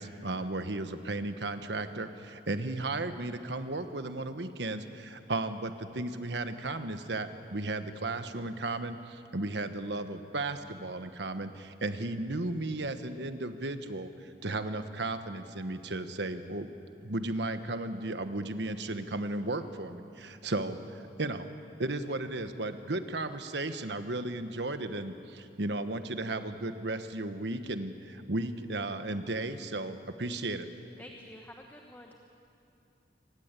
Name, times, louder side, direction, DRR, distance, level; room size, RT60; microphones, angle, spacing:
voice 1, 0.0-16.7 17.0-21.5 21.8-30.7, right 2 dB, 80° right, 9 dB, 1.3 m, -35 dB
voice 2, 31.0-32.2, left 1 dB, 10° left, 2 dB, 1.2 m, -49 dB
25.0 x 19.5 x 8.3 m, 2.8 s
head